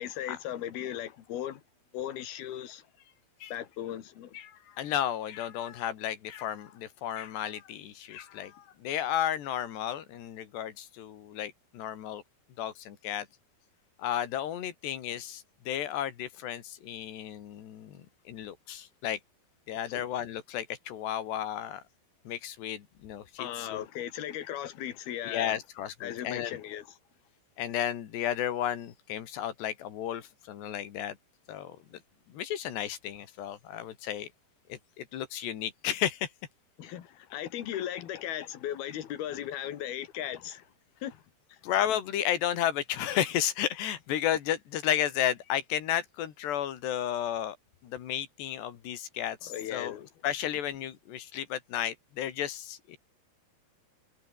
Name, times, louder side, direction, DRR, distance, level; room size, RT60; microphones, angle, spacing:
voice 1, 0.0-1.6 1.9-2.8 3.5-4.3 19.9-20.0 23.4-25.6 26.0-26.9 36.8-40.7 41.0-41.2 41.5-41.6 49.5-50.1, left 11 dB, 70° left, 3.9 m, -37 dB
voice 2, 4.3-12.2 12.6-13.3 14.0-19.2 19.7-21.8 22.3-23.9 25.2-26.6 27.6-31.2 31.5-32.0 32.3-34.3 34.7-36.3 41.6-47.6 47.8-53.0, left 10 dB, 90° left, 4.4 m, -33 dB
omnidirectional pair, 4.7 m